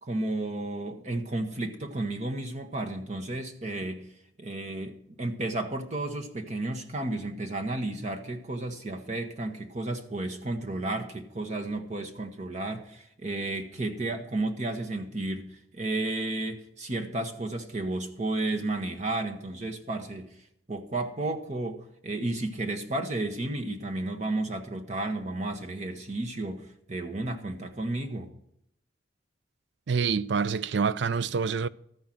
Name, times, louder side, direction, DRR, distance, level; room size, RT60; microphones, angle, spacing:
voice 1, 0.0-4.1 4.4-20.3 20.7-28.3, right 2 dB, 40° right, 1.0 m, -32 dB
voice 2, 29.9-31.7, right 5 dB, 65° right, 0.4 m, -26 dB
13.5 x 5.6 x 7.4 m
head